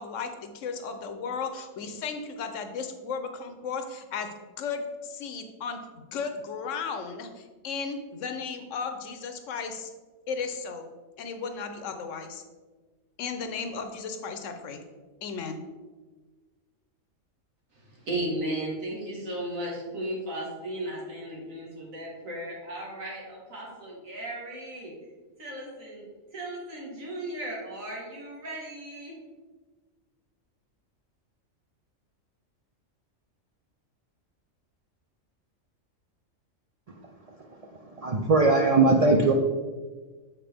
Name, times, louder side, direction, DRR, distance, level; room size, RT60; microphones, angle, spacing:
voice 1, 0.0-4.3 4.6-9.9 10.3-10.8 11.2-12.4 13.2-14.8 15.2-15.6, left 5 dB, 70° left, 7 dB, 1.0 m, -35 dB
voice 2, 17.7-24.9 25.4-29.2, right 1 dB, 85° right, -3 dB, 2.0 m, -36 dB
voice 3, 38.0-39.3, right 3 dB, 70° right, 2 dB, 0.3 m, -20 dB
7.3 x 4.4 x 3.4 m, 1.3 s
omnidirectional pair, 1.4 m